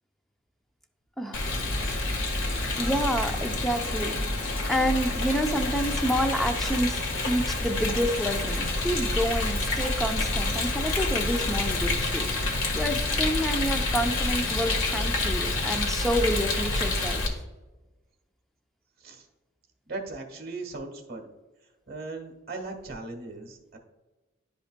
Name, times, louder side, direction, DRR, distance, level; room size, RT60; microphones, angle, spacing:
voice 1, 1.2-1.5 2.8-4.2 4.7-12.3 12.8-17.2, equal, ahead, 4 dB, 0.6 m, -28 dB
Rain, 1.3-17.3, left 2 dB, 90° left, 1.5 m, -28 dB
voice 2, 19.8-21.3 21.9-23.8, right 3 dB, 50° right, 2 dB, 1.5 m, -38 dB
11.0 x 5.3 x 2.2 m, 1.1 s
head